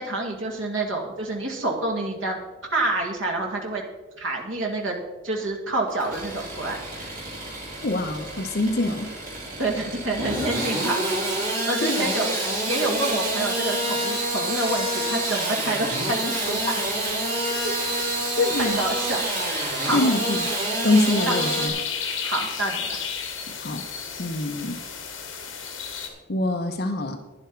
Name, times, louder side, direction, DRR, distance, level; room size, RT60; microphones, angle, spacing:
voice 1, 0.0-2.4 2.7-3.8 4.2-5.0 5.2-7.2 9.6-11.2 11.7-16.8 17.5-17.7 18.6-20.0 21.3-21.4 22.2-23.0, right 2 dB, 65° right, 0 dB, 2.0 m, -28 dB
Engine starting / Sawing, 5.9-21.7, right 1 dB, 40° right, 3.7 m, -28 dB
voice 2, 7.8-9.1 11.8-12.1 18.3-18.8 19.9-20.5 20.8-21.7 23.5-23.9 24.2-24.8 26.3-27.2, left 2 dB, 45° left, 6 dB, 0.7 m, -24 dB
sound 1, 17.5-26.1, left 6 dB, 65° left, 2.2 m, -34 dB
12.0 x 10.5 x 4.6 m, 1.1 s
head